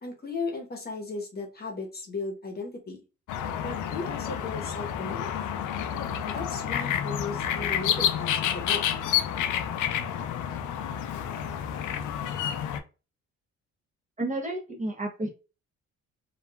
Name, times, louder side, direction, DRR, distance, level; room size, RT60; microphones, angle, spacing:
voice 1, 0.0-3.0 3.6-5.3 6.2-8.8, left 3 dB, 30° left, 1 dB, 0.9 m, -36 dB
sound 1, 3.3-12.8, left 9 dB, 80° left, 0.5 m, -29 dB
voice 2, 14.2-15.3, right 2 dB, 25° right, 1 dB, 0.7 m, -31 dB
2.9 x 2.3 x 2.2 m, 0.32 s
cardioid pair, 90°, 30 cm